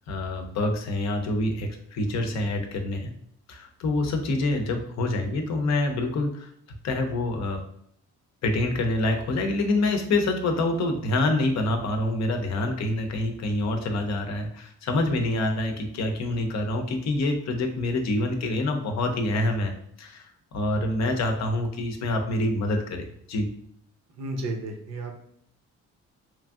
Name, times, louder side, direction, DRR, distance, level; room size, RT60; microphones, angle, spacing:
voice 1, 0.1-3.1 3.5-6.5 6.8-7.6 8.4-19.7 20.0-23.5, left 2 dB, 65° left, 5 dB, 0.6 m, -26 dB
voice 2, 24.1-25.2, right 2 dB, 60° right, 3 dB, 0.7 m, -33 dB
3.0 x 2.5 x 2.3 m, 0.67 s
cardioid pair, 90°, 30 cm